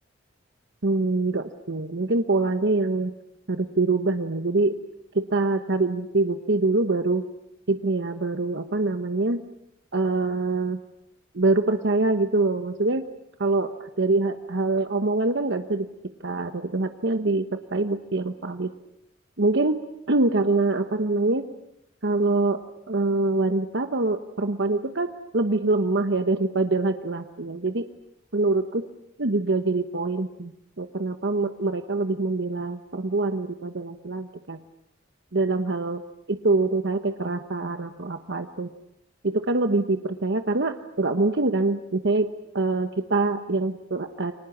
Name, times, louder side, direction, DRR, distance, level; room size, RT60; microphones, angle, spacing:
voice 1, 0.8-3.1 3.5-4.8 5.1-7.2 7.7-9.4 9.9-10.8 11.3-13.0 13.4-15.9 16.2-17.5 17.7-18.7 19.4-19.8 20.1-21.5 22.0-22.6 22.9-25.1 25.3-27.8 28.3-28.8 29.2-30.5 30.8-34.6 35.3-36.0 36.3-38.7 39.2-42.3 42.5-44.3, right 2 dB, 60° right, 7 dB, 1.2 m, -24 dB
29.5 x 24.5 x 7.3 m, 0.80 s
head